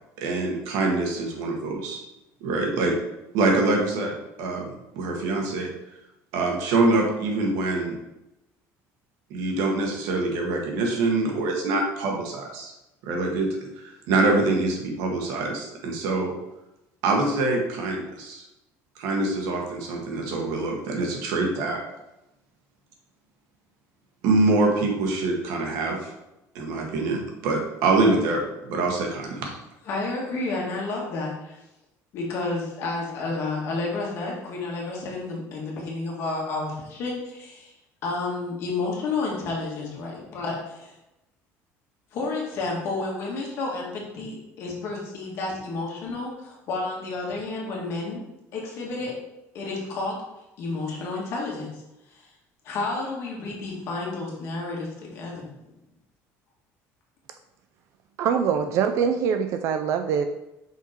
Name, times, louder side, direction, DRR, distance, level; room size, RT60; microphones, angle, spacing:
voice 1, 0.2-2.0 2.4-2.9 3.3-5.7 6.3-8.0 9.3-12.7 13.0-16.3 17.0-18.4 19.0-21.8 24.2-26.1 26.5-29.5, right 2 dB, 75° right, 1 dB, 1.5 m, -25 dB
voice 2, 29.8-31.6 32.1-37.7 38.0-41.0 42.1-48.2 48.5-49.2 49.5-50.2 50.6-51.8 52.1-52.3 52.6-55.5, left 3 dB, 45° left, -2 dB, 1.9 m, -31 dB
voice 3, 58.2-60.3, right 7 dB, 50° right, 7 dB, 0.4 m, -23 dB
5.7 x 4.5 x 4.4 m, 0.92 s
cardioid pair, 180°, 6 cm